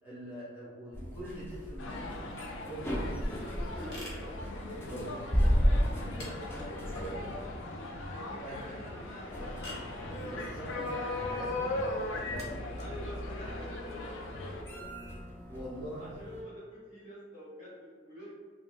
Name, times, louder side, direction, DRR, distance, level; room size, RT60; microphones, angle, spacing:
voice 1, 0.0-2.3 2.7-3.4 4.8-5.5 8.4-8.6 10.3-12.6 15.5-16.1, right 1 dB, 10° right, -10 dB, 0.7 m, -44 dB
sound 1, 0.9-16.4, equal, 10° left, 0.3 m, -36 dB
sound 2, 1.8-14.6, left 2 dB, 85° left, 0.4 m, -39 dB
voice 2, 3.4-4.3 5.5-7.6 8.1-9.6 12.8-14.9 15.4-15.5 16.0-18.3, equal, 35° left, -9 dB, 1.3 m, -47 dB
sound 3, 3.7-14.8, left 1 dB, 55° left, 0.7 m, -51 dB
2.4 x 2.1 x 3.4 m, 1.5 s
head